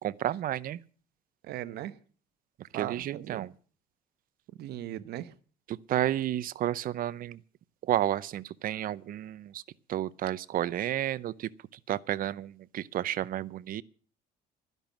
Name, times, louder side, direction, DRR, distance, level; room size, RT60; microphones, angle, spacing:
voice 1, 0.0-0.8 2.7-3.5 5.7-7.4 7.9-9.6 9.9-11.5 11.9-13.8, right 12 dB, 55° right, 0.6 m, -31 dB
voice 2, 1.4-2.0 2.7-3.5 4.6-5.3, right 13 dB, 75° right, 1.0 m, -38 dB
12.5 x 11.0 x 7.2 m
cardioid pair, 110°, 17 cm